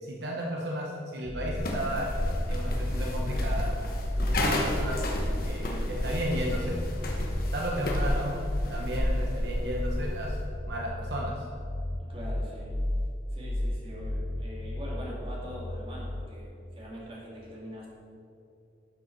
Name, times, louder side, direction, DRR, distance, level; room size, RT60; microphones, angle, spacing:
voice 1, 0.0-2.1 2.5-3.7 4.3-5.1 5.4-6.8 7.5-8.4 8.7-10.4 10.7-11.4, equal, 65° right, -2 dB, 1.0 m, -33 dB
sound 1, 1.3-16.3, left 1 dB, 15° left, 0.5 m, -33 dB
sound 2, 1.5-10.5, left 1 dB, 55° left, 1.1 m, -32 dB
voice 2, 12.0-12.7 13.3-17.9, equal, 30° right, -4 dB, 2.1 m, -43 dB
11.5 x 6.6 x 4.6 m, 2.7 s
head